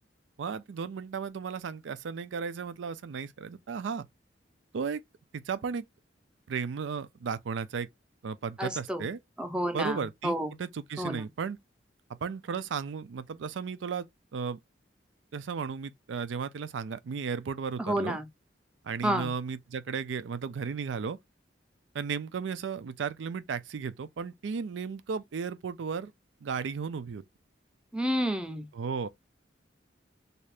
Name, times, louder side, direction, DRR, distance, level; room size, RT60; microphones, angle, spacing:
voice 1, 0.4-4.1 4.7-5.0 5.3-5.8 6.5-7.9 8.2-9.2 9.7-11.6 12.2-14.1 14.3-14.6 15.3-18.2 18.8-21.2 21.9-26.1 26.4-27.2 28.7-29.1, right 6 dB, 85° right, 0.4 m, -34 dB
voice 2, 8.6-9.0 9.4-10.5 11.0-11.2 17.8-18.2 19.0-19.3 27.9-28.7, equal, 5° right, 0.5 m, -30 dB
2.7 x 2.4 x 3.2 m
head